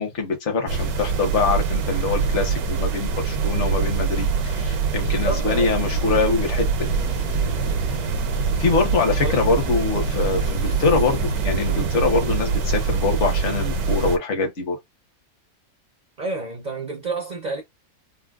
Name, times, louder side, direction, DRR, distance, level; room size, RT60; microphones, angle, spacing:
voice 1, 0.0-6.9 8.6-14.8, left 4 dB, 55° left, 1.2 m, -24 dB
sound 1, 0.7-14.2, right 5 dB, 80° right, 1.2 m, -24 dB
voice 2, 5.0-5.7 9.2-9.4 16.2-17.6, right 2 dB, 55° right, 0.5 m, -29 dB
sound 2, 6.8-12.1, left 1 dB, 85° left, 1.3 m, -34 dB
3.7 x 2.0 x 2.3 m
omnidirectional pair, 1.5 m